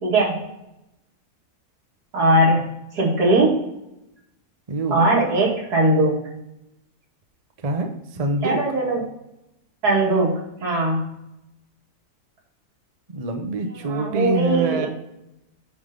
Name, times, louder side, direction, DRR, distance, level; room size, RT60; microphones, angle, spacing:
voice 1, 0.0-0.4 2.1-2.6 2.9-3.6 4.9-6.1 8.4-9.0 9.8-11.0 13.9-14.9, right 2 dB, 80° right, -4 dB, 2.7 m, -19 dB
voice 2, 4.7-5.0 7.6-8.6 13.1-14.9, right 2 dB, 35° right, 4 dB, 0.6 m, -25 dB
9.7 x 3.4 x 3.8 m, 0.87 s
omnidirectional pair, 1.6 m